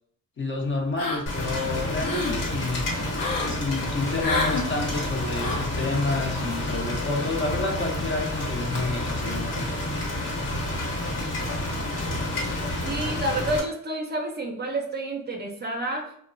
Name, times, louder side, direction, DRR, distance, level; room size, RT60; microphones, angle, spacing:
voice 1, 0.4-2.9 3.5-9.7, left 3 dB, 35° left, 2 dB, 0.5 m, -29 dB
sound 1, 1.0-1.5 1.8-2.4 3.1-3.6 4.2-4.7 5.4-5.7, left 3 dB, 90° left, 0.6 m, -28 dB
Rain, 1.3-13.6, left 1 dB, 70° left, 1.1 m, -29 dB
voice 2, 12.8-16.2, right 1 dB, 30° right, 2 dB, 0.4 m, -29 dB
2.9 x 2.0 x 2.5 m, 0.62 s
cardioid pair, 135°, 33 cm